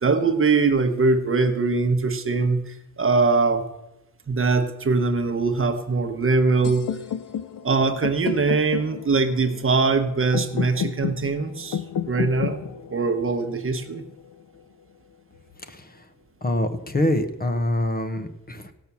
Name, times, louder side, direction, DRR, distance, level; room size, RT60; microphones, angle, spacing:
voice 1, 0.0-3.6 4.3-6.9 7.6-12.6 12.9-14.0, right 4 dB, 40° right, 7 dB, 1.0 m, -22 dB
sound 1, 6.6-14.6, left 8 dB, 85° left, 0.6 m, -32 dB
voice 2, 16.4-18.7, left 1 dB, 30° left, 9 dB, 0.9 m, -25 dB
17.0 x 6.0 x 7.0 m, 0.92 s
wide cardioid pair, 145°, 32 cm